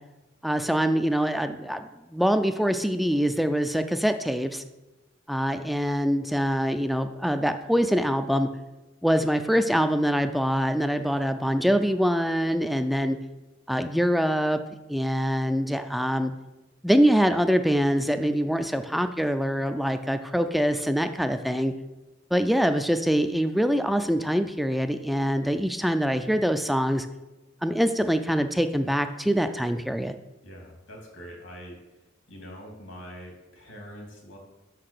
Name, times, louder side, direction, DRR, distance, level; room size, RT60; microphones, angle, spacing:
voice 1, 0.4-4.6 5.3-8.5 9.0-13.2 13.7-14.6 14.9-16.3 16.8-21.7 22.3-27.1 27.6-30.2, equal, ahead, 8 dB, 0.3 m, -24 dB
voice 2, 30.4-31.8 32.3-34.4, equal, 85° left, 0 dB, 2.6 m, -43 dB
6.3 x 5.8 x 6.6 m, 1.0 s
head